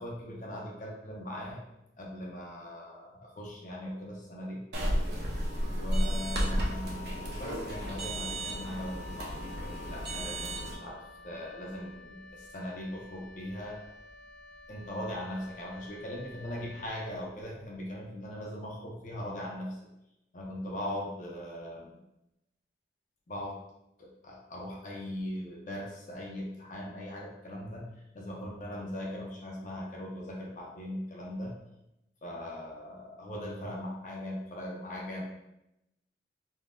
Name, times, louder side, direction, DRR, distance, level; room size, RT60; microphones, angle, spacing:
voice 1, 0.0-1.6 2.0-4.6 5.6-13.8 14.7-19.8 20.3-22.0 23.3-23.6 24.0-31.5 32.2-35.3, left 1 dB, 45° left, -2 dB, 0.5 m, -40 dB
sound 1, 4.7-10.7, equal, 65° right, 0.5 m, -33 dB
Wind instrument woodwind instrument, 8.2-17.7, left 2 dB, 90° right, 1.3 m, -52 dB
3.5 x 2.1 x 2.5 m, 0.88 s
head